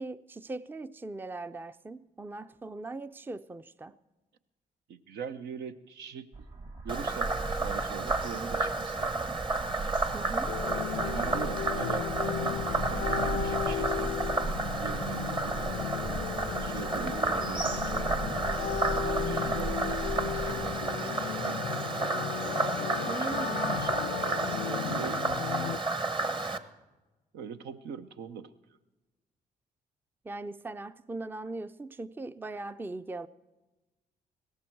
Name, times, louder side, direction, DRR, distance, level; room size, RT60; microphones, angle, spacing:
voice 1, 0.0-4.0 10.1-10.6 16.9-17.3 23.1-23.7 24.6-25.2 30.2-33.3, right 2 dB, 10° right, 0.4 m, -40 dB
voice 2, 4.9-6.5 6.8-9.2 10.1-10.5 11.0-14.2 14.5-15.7 16.6-18.5 19.0-22.1 23.0-23.9 24.8-25.3 27.3-28.5, right 7 dB, 80° right, 0.8 m, -42 dB
sound 1, 6.3-20.8, right 3 dB, 50° right, 2.2 m, -39 dB
Frog, 6.9-26.6, right 3 dB, 30° right, 1.0 m, -31 dB
sound 2, 10.4-25.8, left 12 dB, 70° left, 0.4 m, -36 dB
17.0 x 14.0 x 4.6 m
supercardioid pair, 65°, 17 cm